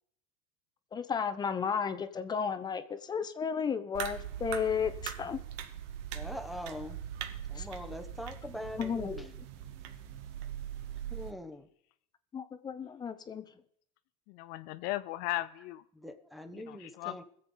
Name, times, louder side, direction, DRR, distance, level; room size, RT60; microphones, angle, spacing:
voice 1, 0.9-5.4 7.6-7.7 8.8-9.2 12.3-13.4, left 6 dB, 25° left, 10 dB, 0.8 m, -33 dB
sound 1, 3.9-11.3, right 10 dB, 65° right, 1.1 m, -41 dB
voice 2, 6.1-7.0 7.5-9.3 11.1-11.7 15.9-17.2, left 1 dB, ahead, 5 dB, 1.1 m, -43 dB
voice 3, 14.3-15.8 16.5-17.2, left 16 dB, 60° left, 12 dB, 0.5 m, -37 dB
21.0 x 7.8 x 3.9 m, 0.67 s
supercardioid pair, 115°, 17 cm